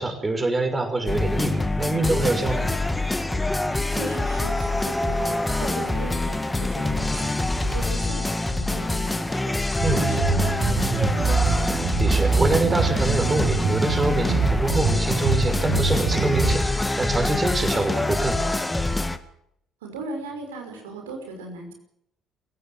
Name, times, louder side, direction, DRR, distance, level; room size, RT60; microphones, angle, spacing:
voice 1, 0.0-2.7 9.8-10.0 12.0-18.6, right 2 dB, 20° right, 7 dB, 6.0 m, -25 dB
sound 1, 1.1-19.2, left 2 dB, 10° left, 2.2 m, -25 dB
voice 2, 3.9-7.3 7.6-9.5 10.0-11.8 19.8-21.7, right 3 dB, 80° right, 3 dB, 5.7 m, -37 dB
sound 2, 9.8-16.6, right 4 dB, 55° right, 7.6 m, -24 dB
28.0 x 16.5 x 7.7 m, 0.76 s
figure-of-eight pair, 50°, 0 cm